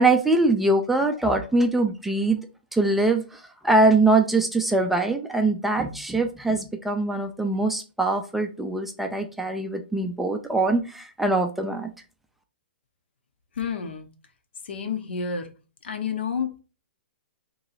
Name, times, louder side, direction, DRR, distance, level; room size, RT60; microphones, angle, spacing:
voice 1, 0.0-2.4 2.7-11.9, right 2 dB, 5° right, 4 dB, 0.3 m, -23 dB
voice 2, 13.6-14.1 14.7-15.5 15.8-16.6, left 6 dB, 75° left, 7 dB, 0.8 m, -29 dB
3.0 x 2.7 x 4.0 m, 0.33 s
hypercardioid pair, 150°, 6 cm